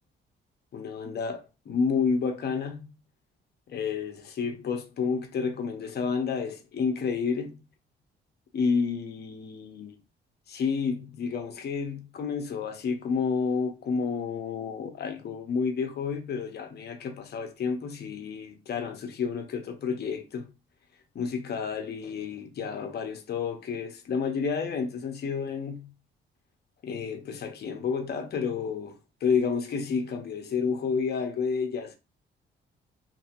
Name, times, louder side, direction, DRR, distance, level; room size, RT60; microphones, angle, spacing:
voice 1, 0.7-1.4 1.7-2.9 3.7-7.6 8.5-10.0 10.5-20.5 21.1-25.9 26.8-31.9, left 5 dB, 55° left, 0.7 m, -30 dB
2.7 x 2.6 x 2.6 m
cardioid pair, 90°, 20 cm